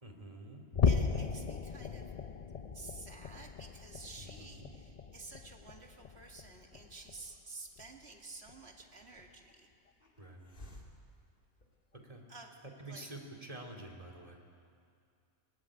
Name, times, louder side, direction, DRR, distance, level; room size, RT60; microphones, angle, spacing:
voice 1, 0.0-0.7 4.2-4.7 10.2-10.4 11.9-12.2 12.8-14.4, right 1 dB, 25° right, 1 dB, 2.6 m, -48 dB
sound 1, 0.7-7.4 7.8-8.0 8.5-8.6 9.2-9.3, left 6 dB, 55° left, 0.4 m, -36 dB
voice 2, 0.8-2.1 2.7-9.7 12.3-13.1, right 3 dB, 50° right, 2 dB, 2.2 m, -51 dB
Hiss, 6.7-12.2, left 1 dB, 40° left, 2.4 m, -59 dB
20.0 x 16.0 x 9.9 m, 2.3 s
omnidirectional pair, 1.5 m